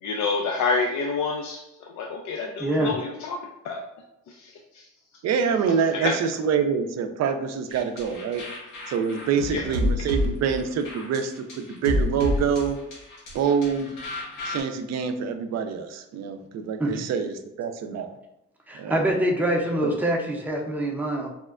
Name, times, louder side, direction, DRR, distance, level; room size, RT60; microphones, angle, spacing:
voice 1, 0.0-1.6 1.9-3.4 3.6-3.8 4.3-4.9 5.9-6.1 9.5-9.7, left 4 dB, 70° left, 0 dB, 0.5 m, -28 dB
voice 2, 2.6-2.9 16.8-17.1 18.7-21.3, right 1 dB, 5° right, 0 dB, 0.6 m, -25 dB
voice 3, 5.2-8.5 8.9-12.8 13.3-13.9 14.4-18.1 18.7-19.0 19.8-19.9, right 6 dB, 60° right, 8 dB, 0.4 m, -26 dB
sound 1, 7.7-14.6, left 1 dB, 90° left, 1.1 m, -30 dB
4.2 x 2.1 x 2.4 m, 0.85 s
cardioid pair, 90°, 30 cm